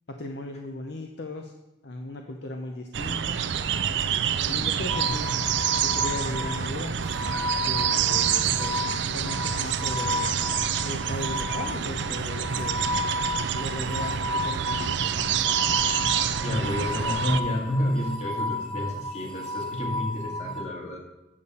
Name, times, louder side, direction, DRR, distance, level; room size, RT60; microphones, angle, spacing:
voice 1, 0.1-1.5 1.8-3.4 4.5-5.3 5.8-7.0 7.6-10.4 10.8-12.8 13.5-15.2, left 1 dB, 55° left, 3 dB, 0.7 m, -37 dB
sound 1, 2.9-17.4, right 8 dB, 65° right, 0.4 m, -27 dB
sound 2, 4.9-20.6, left 2 dB, 5° left, 1.4 m, -33 dB
voice 2, 16.4-21.0, left 1 dB, 35° left, 0 dB, 1.9 m, -29 dB
8.6 x 6.9 x 5.5 m, 0.96 s
head